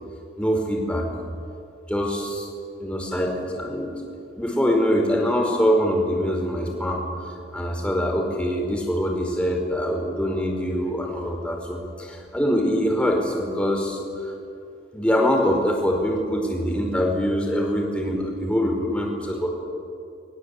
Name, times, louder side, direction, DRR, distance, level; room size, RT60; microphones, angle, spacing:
voice 1, 0.4-1.1 1.9-2.5 2.8-3.9 4.4-7.0 7.5-14.3 14.9-19.5, equal, 5° left, 0 dB, 5.0 m, -24 dB
29.5 x 23.0 x 8.5 m, 2.6 s
head